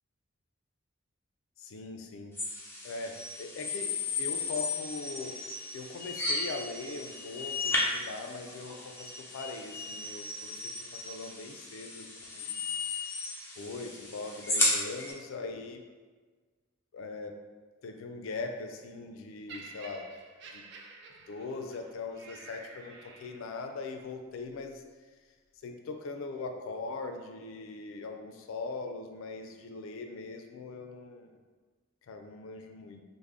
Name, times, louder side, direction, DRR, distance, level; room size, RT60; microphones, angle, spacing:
voice 1, 1.6-2.4 2.8-5.4 5.7-12.6 13.6-15.8 16.9-17.4 17.8-20.1 20.5-20.6 21.3-24.8 25.6-31.4 32.1-33.0, left 3 dB, 80° left, 5 dB, 0.4 m, -41 dB
sound 1, 2.3-15.1, left 3 dB, 10° left, 0.5 m, -35 dB
Laughter, 19.5-23.7 24.5-24.7, right 3 dB, 55° right, 0.3 m, -50 dB
3.4 x 2.1 x 3.5 m, 1.4 s
head